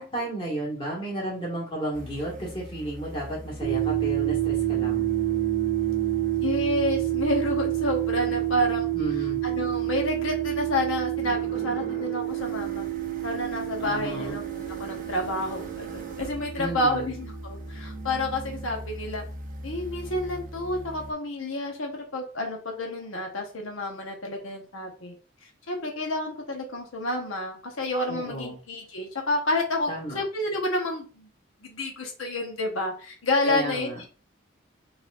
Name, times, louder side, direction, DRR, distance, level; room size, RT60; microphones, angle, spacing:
voice 1, 0.0-5.1 8.9-9.4 13.8-14.4 16.6-17.1 28.1-28.6 29.9-30.2 33.4-34.0, right 1 dB, 25° left, -5 dB, 1.5 m, -33 dB
sound 1, 1.9-21.1, right 1 dB, 40° right, 0.8 m, -40 dB
sound 2, 3.6-17.6, right 16 dB, 65° right, 1.1 m, -28 dB
voice 2, 6.4-8.9 9.4-12.9 13.2-19.2 19.6-25.1 25.4-31.3 31.6-34.0, left 1 dB, 90° left, 1 dB, 1.1 m, -29 dB
4.4 x 4.1 x 2.5 m, 0.36 s
head